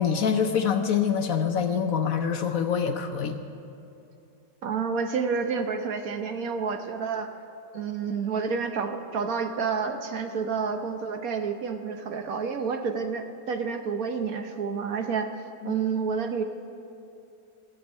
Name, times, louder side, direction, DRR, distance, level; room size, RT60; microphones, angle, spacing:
voice 1, 0.0-3.4 15.6-15.8, left 7 dB, 60° left, 6 dB, 1.0 m, -25 dB
voice 2, 4.6-7.3 7.7-15.3 15.6-16.4, right 5 dB, 60° right, 6 dB, 1.2 m, -29 dB
15.0 x 7.2 x 9.6 m, 2.8 s
omnidirectional pair, 1.8 m